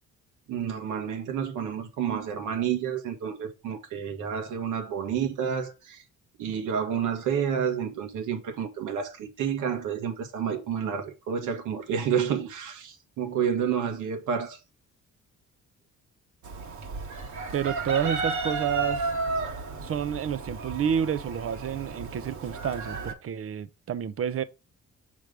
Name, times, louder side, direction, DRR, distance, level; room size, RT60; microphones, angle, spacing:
voice 1, 0.5-6.0 6.4-14.6, right 8 dB, 85° right, 1.5 m, -30 dB
Chicken rooster, 16.4-23.1, right 3 dB, 70° right, 1.6 m, -33 dB
voice 2, 17.5-19.1 19.8-24.4, right 8 dB, 50° right, 0.7 m, -29 dB
6.3 x 3.4 x 5.1 m
cardioid pair, 90°, 30 cm